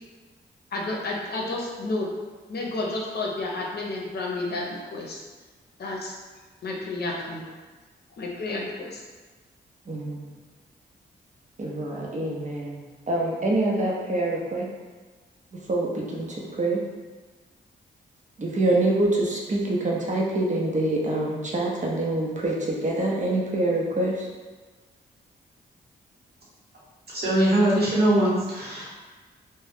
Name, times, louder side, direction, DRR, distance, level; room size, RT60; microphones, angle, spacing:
voice 1, 0.7-2.1 2.5-5.2 5.8-6.2 6.6-7.5 8.2-9.0, left 2 dB, 60° left, -2 dB, 0.7 m, -31 dB
voice 2, 9.9-10.2 11.6-12.8 13.1-14.7 15.7-16.3 16.6-16.8 18.4-24.1, right 2 dB, 40° right, -3 dB, 0.7 m, -25 dB
voice 3, 27.1-28.9, right 1 dB, 55° right, -6 dB, 1.1 m, -22 dB
2.4 x 2.2 x 3.4 m, 1.3 s
cardioid pair, 55°, 19 cm